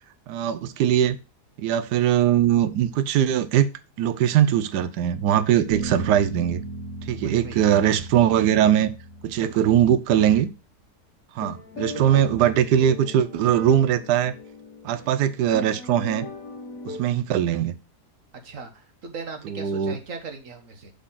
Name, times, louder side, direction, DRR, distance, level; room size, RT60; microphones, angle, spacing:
voice 1, 0.3-1.2 1.6-3.7 4.0-6.6 7.1-8.9 9.2-10.5 11.3-14.3 14.8-16.3 16.8-17.7 19.5-20.0, right 10 dB, 85° right, 12 dB, 1.2 m, -21 dB
sound 1, 5.7-10.1, right 2 dB, 30° right, 2.6 m, -36 dB
voice 2, 7.1-7.6 9.4-9.7 11.5-12.2 18.4-20.9, right 4 dB, 55° right, 6 dB, 1.5 m, -39 dB
sound 2, 11.4-17.0, left 3 dB, 60° left, 1.4 m, -39 dB
5.8 x 4.1 x 5.6 m, 0.31 s
omnidirectional pair, 1.7 m